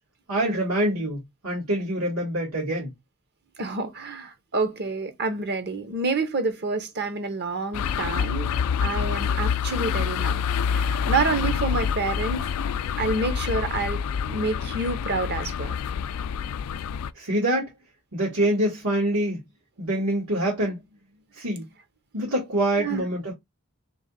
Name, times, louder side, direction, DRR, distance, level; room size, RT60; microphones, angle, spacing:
voice 1, 0.3-2.9 17.1-17.7 18.1-19.4 19.8-20.8 21.3-21.6 22.1-23.3, right 1 dB, 75° right, 1.7 m, -25 dB
voice 2, 3.6-8.5 8.8-10.4 10.7-12.5 13.0-15.8 22.8-23.0, right 3 dB, 50° right, 0.8 m, -28 dB
sound 1, 7.7-17.1, left 7 dB, 85° left, 0.3 m, -27 dB
3.1 x 2.9 x 4.0 m
head